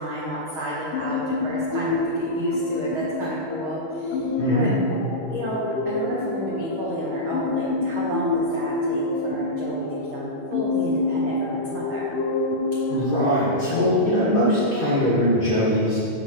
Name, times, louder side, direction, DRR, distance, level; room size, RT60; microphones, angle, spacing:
voice 1, 0.0-4.7 5.3-12.2, right 1 dB, 85° right, -5 dB, 1.1 m, -31 dB
sound 1, 0.9-15.3, left 3 dB, 80° left, 2.1 m, -27 dB
voice 2, 4.4-4.7 12.9-16.0, equal, 45° left, -9 dB, 1.4 m, -21 dB
7.2 x 4.3 x 6.2 m, 2.8 s
omnidirectional pair, 3.7 m